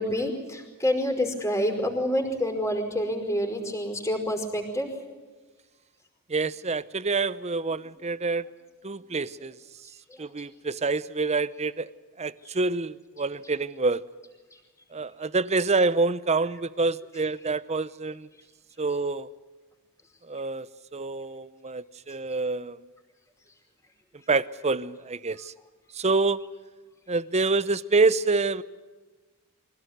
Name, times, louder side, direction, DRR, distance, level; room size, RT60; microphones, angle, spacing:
voice 1, 0.0-4.9, equal, 15° left, 4 dB, 5.0 m, -27 dB
voice 2, 6.3-8.5 8.8-9.6 10.2-11.9 12.2-14.0 14.9-18.3 18.8-19.3 20.3-20.7 20.9-22.8 24.3-25.5 25.9-26.4 27.1-28.6, right 3 dB, 30° right, 17 dB, 0.7 m, -26 dB
25.0 x 17.0 x 9.4 m, 1.3 s
head